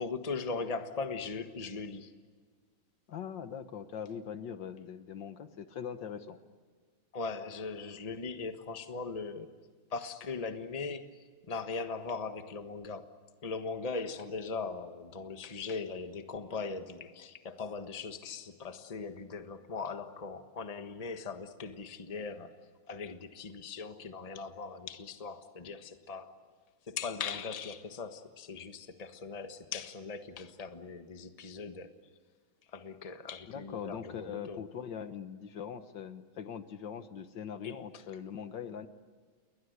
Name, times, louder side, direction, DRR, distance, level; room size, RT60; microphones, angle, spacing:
voice 1, 0.0-2.1 7.1-9.5 9.9-13.1 13.4-26.4 26.9-31.9 32.7-34.6 37.6-38.0, left 4 dB, 20° left, 8 dB, 1.2 m, -39 dB
voice 2, 3.1-6.4 33.5-38.9, left 8 dB, 65° left, 10 dB, 1.7 m, -41 dB
29.5 x 22.0 x 8.1 m, 1.6 s
omnidirectional pair, 2.2 m